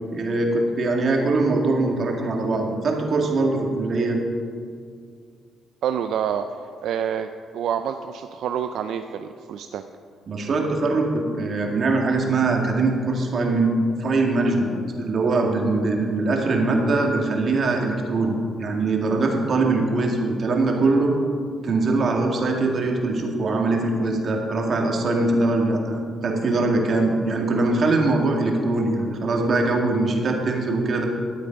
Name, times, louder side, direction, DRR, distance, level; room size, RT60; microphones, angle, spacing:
voice 1, 0.1-4.2 10.3-21.1 21.6-31.0, right 2 dB, 50° right, 1 dB, 2.1 m, -22 dB
voice 2, 5.8-6.5 6.8-9.8, right 8 dB, 75° right, 8 dB, 0.4 m, -27 dB
13.0 x 8.7 x 5.2 m, 2.2 s
cardioid pair, 90°, 0 cm